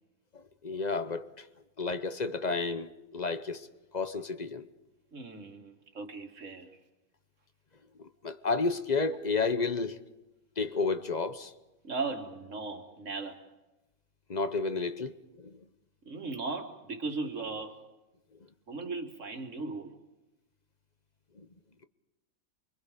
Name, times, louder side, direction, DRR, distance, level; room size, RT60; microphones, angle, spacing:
voice 1, 0.3-1.5 1.8-3.7 3.9-4.7 8.0-10.0 10.6-11.5 14.3-15.6 21.4-21.5, left 4 dB, 35° left, 0.8 m, -31 dB
voice 2, 5.1-6.7 11.8-13.4 16.0-17.8 18.7-19.9, right 3 dB, 60° right, 2.3 m, -37 dB
29.0 x 24.0 x 5.1 m
omnidirectional pair, 1.4 m